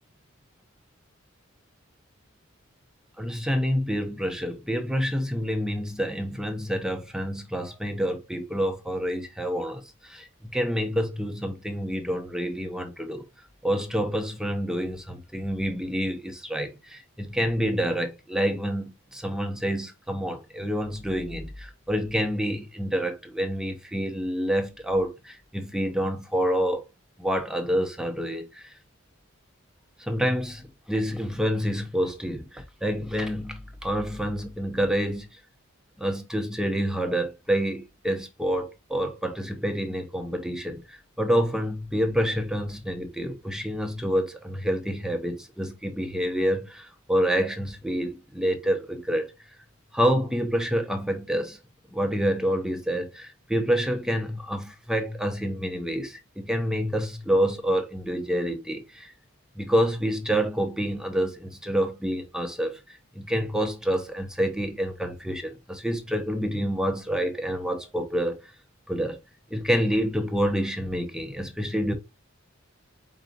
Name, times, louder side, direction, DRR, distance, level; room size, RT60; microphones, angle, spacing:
voice 1, 3.2-10.3 10.5-13.2 13.6-26.8 27.2-28.7 30.0-35.3 36.0-49.3 49.9-51.6 51.9-59.1 59.6-62.8 63.1-68.4 68.9-69.2 69.5-71.9, equal, 5° right, 0.8 m, -28 dB
4.7 x 3.9 x 2.8 m
head